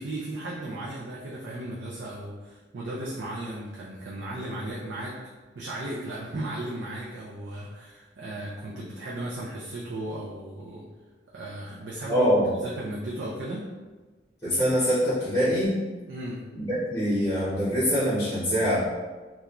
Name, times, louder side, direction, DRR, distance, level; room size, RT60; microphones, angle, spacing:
voice 1, 0.0-5.2 5.6-10.8 11.3-12.3 12.6-13.6 16.1-16.4, right 1 dB, 70° right, -5 dB, 0.4 m, -35 dB
voice 2, 12.1-12.5 14.4-15.8 16.5-18.8, equal, 15° left, -12 dB, 0.9 m, -24 dB
2.9 x 2.3 x 2.4 m, 1.3 s
head